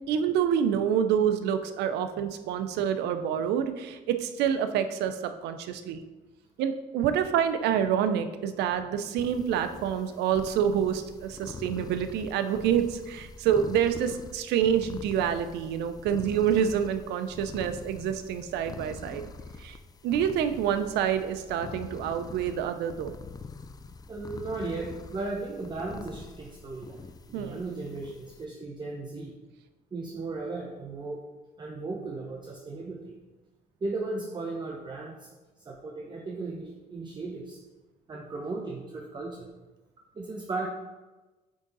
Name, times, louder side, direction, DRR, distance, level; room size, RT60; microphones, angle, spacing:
voice 1, 0.1-6.0 6.6-19.3 19.6-19.8 20.0-23.1 27.3-27.6, right 8 dB, 80° right, 9 dB, 0.6 m, -27 dB
sound 1, 9.2-28.4, left 4 dB, 25° left, 0.4 m, -45 dB
voice 2, 24.1-29.3 29.9-31.2 31.6-33.1 33.8-35.3 35.6-37.6 38.1-39.5 40.1-40.7, right 3 dB, 25° right, -1 dB, 0.8 m, -36 dB
8.6 x 3.7 x 4.0 m, 1.2 s
cardioid pair, 110°, 17 cm